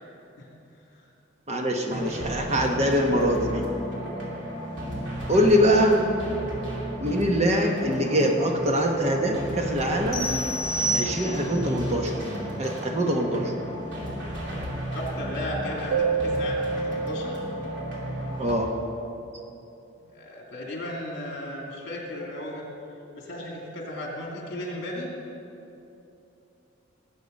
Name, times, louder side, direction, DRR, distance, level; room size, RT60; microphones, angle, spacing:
voice 1, 1.5-3.6 5.3-6.1 7.0-10.3 10.9-12.2 12.6-13.5 18.4-18.7, equal, 35° right, 2 dB, 1.1 m, -23 dB
sound 1, 1.9-18.5, equal, 65° right, 2.8 m, -34 dB
sound 2, 10.1-11.6, right 1 dB, 20° left, 3.0 m, -29 dB
voice 2, 14.9-17.4 20.1-22.7 23.2-25.1, left 1 dB, 60° left, -1 dB, 2.7 m, -35 dB
Keyboard (musical), 15.9-18.6, right 4 dB, 90° right, 0.6 m, -29 dB
19.5 x 8.2 x 5.3 m, 2.9 s
head